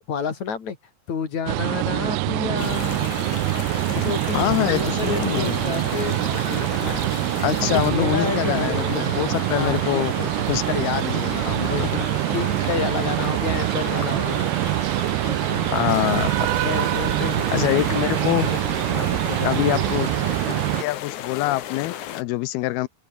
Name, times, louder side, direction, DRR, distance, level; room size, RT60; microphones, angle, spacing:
voice 1, 0.1-0.8 1.1-3.1 3.9-7.1 7.6-10.1 11.6-11.9 12.3-14.5 15.3-15.7 16.6-18.6 18.9-19.8, left 6 dB, 45° left, 4.0 m, -30 dB
sound 1, 1.5-20.8, right 23 dB, 85° right, 2.5 m, -24 dB
sound 2, 2.6-22.2, left 11 dB, 60° left, 2.2 m, -35 dB
voice 2, 4.3-5.6 7.4-11.9 15.7-16.5 17.5-18.5 19.4-20.1 20.8-22.9, left 18 dB, 80° left, 2.3 m, -25 dB
omnidirectional pair, 5.0 m